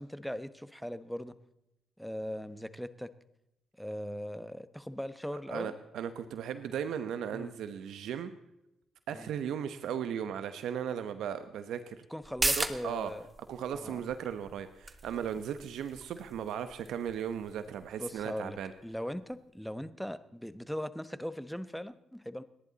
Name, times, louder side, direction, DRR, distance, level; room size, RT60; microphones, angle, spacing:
voice 1, 0.0-1.4 2.0-3.1 3.8-5.7 7.3-7.5 9.1-9.3 12.1-13.3 13.7-14.0 18.0-22.4, equal, ahead, 13 dB, 1.0 m, -39 dB
voice 2, 5.5-8.3 9.1-12.0 12.6-13.1 13.5-18.7, right 8 dB, 75° right, 11 dB, 1.0 m, -36 dB
sound 1, 12.2-19.4 19.7-19.8, right 2 dB, 15° right, 1.4 m, -39 dB
29.0 x 11.0 x 4.1 m, 0.87 s
cardioid pair, 90°, 0 cm